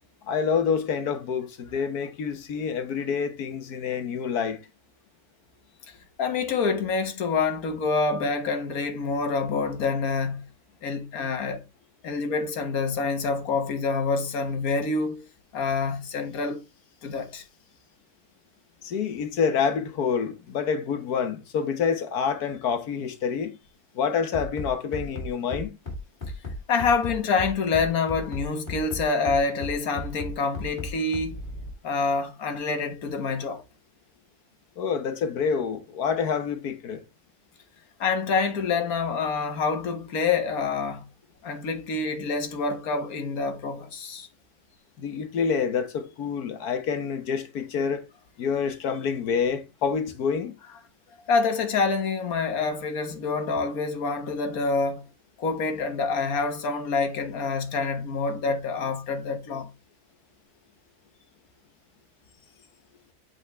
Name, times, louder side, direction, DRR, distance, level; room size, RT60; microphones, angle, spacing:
voice 1, 0.3-4.6 18.8-23.5 23.9-25.7 34.8-37.0 45.0-48.0 48.4-50.5, left 6 dB, 90° left, 1.6 m, -27 dB
voice 2, 5.9-10.4 10.8-11.6 12.0-15.2 15.5-16.6 17.0-17.4 26.7-31.4 31.8-33.6 38.0-41.0 41.4-44.3 51.3-55.0 55.4-59.7, left 4 dB, 70° left, 1.7 m, -27 dB
Bass drum, 24.3-31.7, left 1 dB, 35° left, 2.6 m, -34 dB
8.0 x 4.9 x 3.1 m
omnidirectional pair, 1.6 m